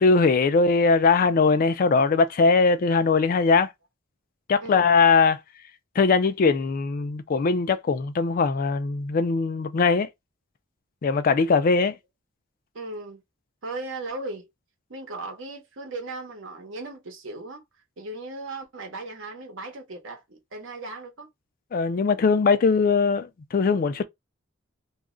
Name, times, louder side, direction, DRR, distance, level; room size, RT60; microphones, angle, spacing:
voice 1, 0.0-3.7 4.5-5.4 6.0-10.1 11.0-12.0 21.7-24.0, left 4 dB, 45° left, 0.3 m, -21 dB
voice 2, 12.7-13.2 13.6-14.5 14.9-17.6 18.0-21.3, right 2 dB, 70° right, 0.9 m, -37 dB
2.3 x 2.1 x 3.6 m
head